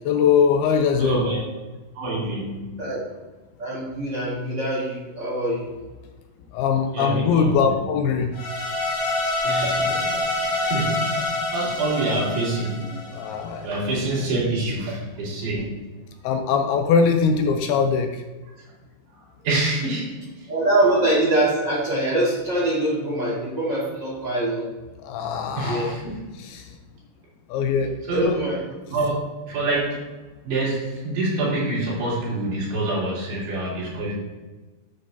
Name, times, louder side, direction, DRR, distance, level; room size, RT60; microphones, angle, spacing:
voice 1, 0.1-1.2 6.5-8.3 13.1-13.7 16.2-18.2 25.0-25.9 26.4-26.7 27.5-27.9 28.2-28.4, left 6 dB, 80° left, 5 dB, 2.4 m, -21 dB
voice 2, 1.0-1.4 1.9-2.9 6.9-7.8 9.4-13.3 13.6-15.8 19.4-20.5 25.5-26.4 28.1-28.4 28.9-29.2 29.4-30.1 30.4-34.1, right 2 dB, 75° right, -7 dB, 5.1 m, -27 dB
voice 3, 3.6-5.7 20.5-24.7 25.6-25.9 28.1-28.6, right 1 dB, 55° right, -7 dB, 1.2 m, -23 dB
sound 1, 8.3-13.6, left 2 dB, 50° left, 3.8 m, -26 dB
10.5 x 6.9 x 2.7 m, 1.2 s
omnidirectional pair, 4.8 m